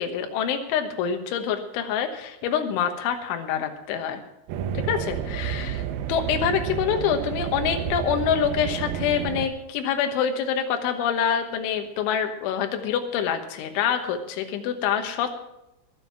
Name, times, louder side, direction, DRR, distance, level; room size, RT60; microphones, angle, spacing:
voice 1, 0.0-4.2 4.8-15.3, left 8 dB, 80° left, 5 dB, 3.6 m, -26 dB
sound 1, 4.5-9.5, right 9 dB, 85° right, 2.2 m, -30 dB
21.5 x 7.4 x 5.8 m, 0.85 s
omnidirectional pair, 5.5 m